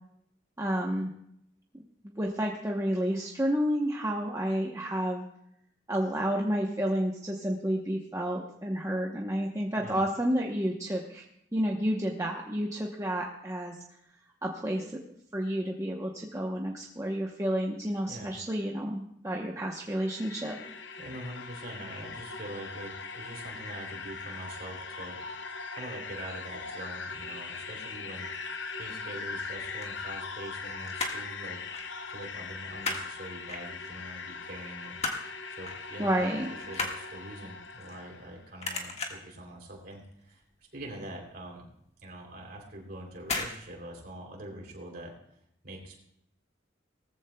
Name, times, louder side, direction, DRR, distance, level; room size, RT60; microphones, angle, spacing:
voice 1, 0.6-1.1 2.0-5.2 5.9-11.2 11.5-13.8 14.4-15.0 15.3-20.6 36.0-36.5, equal, 15° right, -1 dB, 0.9 m, -30 dB
sound 1, 19.8-38.4, left 4 dB, 60° left, 0.8 m, -40 dB
voice 2, 21.0-25.2 25.7-28.3 28.8-31.6 32.1-35.0 35.6-36.2 36.7-40.4 40.7-41.7 42.0-45.2 45.6-46.0, right 1 dB, 50° right, 0 dB, 3.1 m, -44 dB
sound 2, 29.6-30.6 30.8-31.3 31.7-31.9 32.2-33.1 33.5-34.1 34.5-35.3 35.7-35.9 36.2-38.3 38.6-39.4 39.8-40.1 40.4-40.5 40.8-40.9 41.4-41.5 42.3-42.6 43.2-43.6 43.8-43.9, left 3 dB, 35° left, 1.6 m, -35 dB
19.0 x 14.5 x 2.3 m, 0.74 s
head